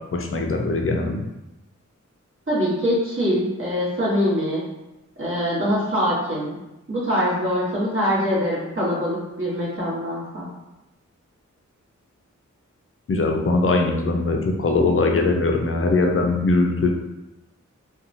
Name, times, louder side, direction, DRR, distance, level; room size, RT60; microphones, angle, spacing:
voice 1, 0.1-1.3 13.1-16.9, left 3 dB, 45° left, 2 dB, 0.4 m, -21 dB
voice 2, 2.5-4.6 5.2-6.5 6.9-10.5, equal, 45° right, -7 dB, 1.1 m, -23 dB
2.8 x 2.3 x 2.6 m, 0.97 s
wide cardioid pair, 65°, 30 cm